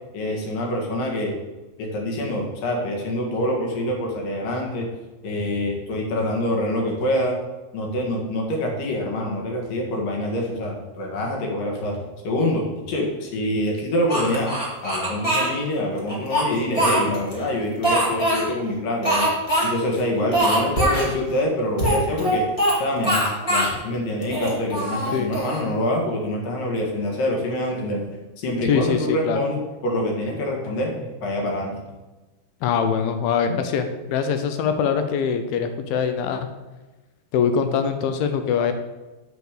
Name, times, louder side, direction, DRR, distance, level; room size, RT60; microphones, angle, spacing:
voice 1, 0.1-1.4 1.8-4.9 5.2-7.4 7.7-14.5 14.8-19.3 19.6-22.4 22.7-28.0 28.4-31.8, left 1 dB, 60° left, 0 dB, 2.9 m, -25 dB
Speech, 14.1-15.5 16.1-17.3 17.8-18.4 19.0-19.7 19.9-20.0 20.3-21.1 21.8-22.8 23.0-23.7 24.2-25.6, right 1 dB, 25° left, 0.7 m, -22 dB
voice 2, 28.7-29.4 32.6-36.5 37.3-38.7, left 7 dB, 80° left, 8 dB, 2.3 m, -23 dB
8.0 x 5.2 x 6.5 m, 1.2 s
omnidirectional pair, 4.7 m